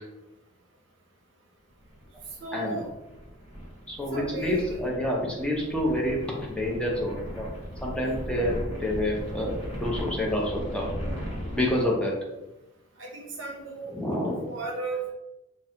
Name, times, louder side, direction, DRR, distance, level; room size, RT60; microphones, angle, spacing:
sound 1, 1.8-11.9, equal, 75° left, 1.1 m, -37 dB
voice 1, 2.4-2.9 4.1-4.6 8.0-8.1 13.0-14.0 14.5-15.1, right 3 dB, 60° right, -1 dB, 0.7 m, -35 dB
voice 2, 3.9-7.5 7.8-10.8 11.5-12.1 13.9-14.5, left 1 dB, 5° left, -3 dB, 0.4 m, -28 dB
2.3 x 2.1 x 2.7 m, 0.97 s
head